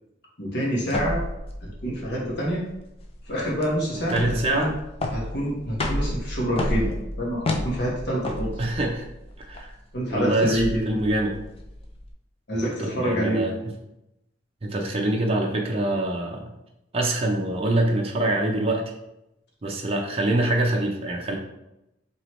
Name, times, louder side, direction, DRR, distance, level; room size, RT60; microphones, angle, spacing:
voice 1, 0.4-1.2 1.8-2.6 3.2-4.7 5.1-8.6 9.9-11.0 12.5-13.4, equal, 60° left, -4 dB, 1.3 m, -27 dB
sound 1, 0.9-12.1, left 1 dB, 30° left, 0.5 m, -31 dB
voice 2, 3.9-4.7 8.6-9.0 9.4-9.7 10.1-11.3 12.6-13.5 14.6-16.5 16.9-18.9 19.6-21.4, right 1 dB, 30° right, 0 dB, 0.6 m, -25 dB
4.4 x 3.0 x 3.1 m, 0.88 s
head